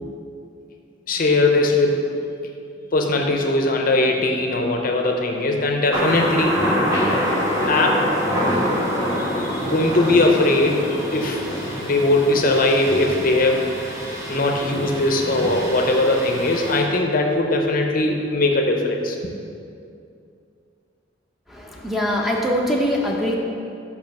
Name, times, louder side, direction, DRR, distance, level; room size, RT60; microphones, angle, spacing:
voice 1, 1.1-2.1 2.9-6.6 7.7-8.0 9.2-11.4 11.8-14.0 14.3-19.2, left 2 dB, 50° left, 2 dB, 0.6 m, -20 dB
Thunder, 5.9-16.8, equal, 20° right, 1.4 m, -25 dB
voice 2, 21.5-23.4, equal, ahead, -2 dB, 0.7 m, -22 dB
5.5 x 5.2 x 5.8 m, 2.5 s
head